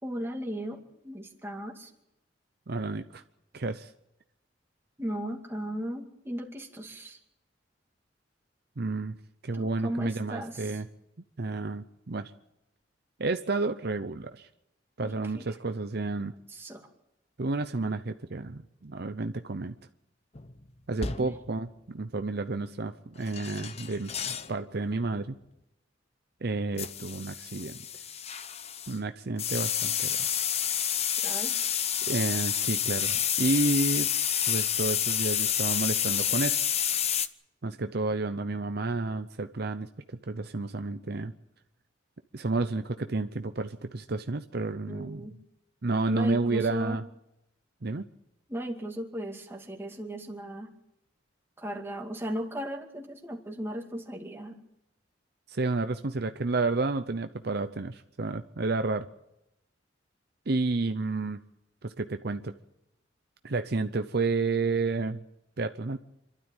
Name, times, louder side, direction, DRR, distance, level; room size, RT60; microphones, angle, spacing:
voice 1, 0.0-1.9 5.0-7.2 9.5-10.7 15.0-15.4 16.5-16.9 21.0-21.3 31.2-31.6 44.9-45.4 46.1-47.0 48.5-50.7 51.6-54.6, equal, 15° right, 2 dB, 2.3 m, -36 dB
voice 2, 2.7-3.2 3.5-3.9 8.8-9.2 9.4-10.9 11.4-12.3 13.2-14.5 15.0-16.3 17.4-19.7 20.9-24.1 24.5-25.4 26.4-27.8 28.9-30.3 32.1-34.1 34.5-36.6 37.6-39.9 40.3-41.3 42.3-45.3 45.8-47.1 47.8-48.1 55.5-59.1 60.5-61.4 61.8-62.5 63.4-65.2 65.6-66.0, right 3 dB, 55° right, 9 dB, 0.7 m, -30 dB
sound 1, 20.4-20.6 21.0-21.5 23.2-24.5 24.9-25.2 26.8-29.0 29.4-37.3, left 9 dB, 35° left, 0.8 m, -29 dB
27.0 x 12.5 x 9.0 m, 0.87 s
head